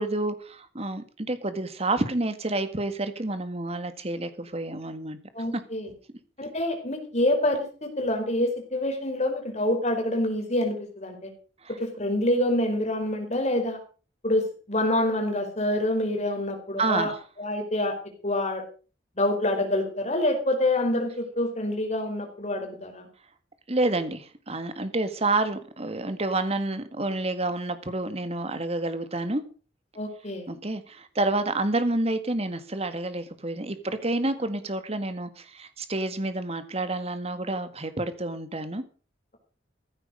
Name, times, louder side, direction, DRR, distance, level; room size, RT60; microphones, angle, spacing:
voice 1, 0.0-5.2 11.6-11.8 16.8-17.1 23.7-29.4 30.5-38.8, right 2 dB, 35° right, 1.8 m, -29 dB
voice 2, 5.3-5.9 6.4-11.3 11.7-13.8 14.2-17.1 17.4-17.9 18.2-18.6 19.2-23.1 30.0-30.5, left 1 dB, 40° left, 4.4 m, -26 dB
15.0 x 13.0 x 5.2 m
head